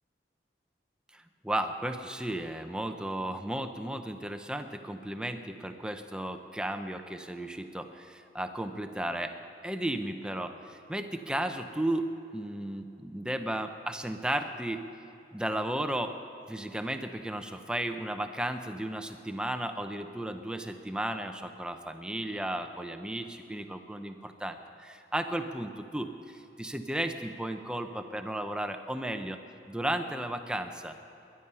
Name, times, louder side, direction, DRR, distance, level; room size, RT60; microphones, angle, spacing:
voice 1, 1.1-9.3 9.6-14.8 15.3-16.1 16.5-29.4 29.7-30.9, right 1 dB, 5° right, 7 dB, 0.6 m, -34 dB
21.0 x 11.0 x 5.6 m, 2.9 s
head